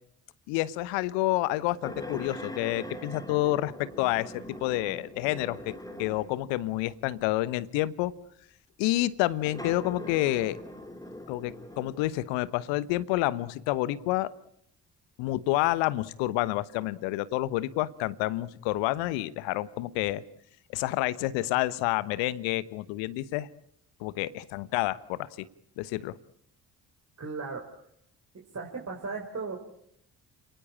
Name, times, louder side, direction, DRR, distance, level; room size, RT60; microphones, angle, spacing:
voice 1, 0.5-5.7 6.0-8.1 8.8-10.6 11.3-14.3 15.2-20.2 20.7-23.5 24.0-25.3 25.8-26.1, left 17 dB, 65° left, 18 dB, 1.2 m, -29 dB
sound 1, 1.8-6.5 7.2-7.3 9.4-12.0, left 1 dB, 5° left, 2.9 m, -42 dB
voice 2, 27.2-27.8 28.5-29.6, right 4 dB, 35° right, 1 dB, 4.8 m, -36 dB
29.5 x 19.5 x 8.6 m, 0.72 s
figure-of-eight pair, 45°, 47 cm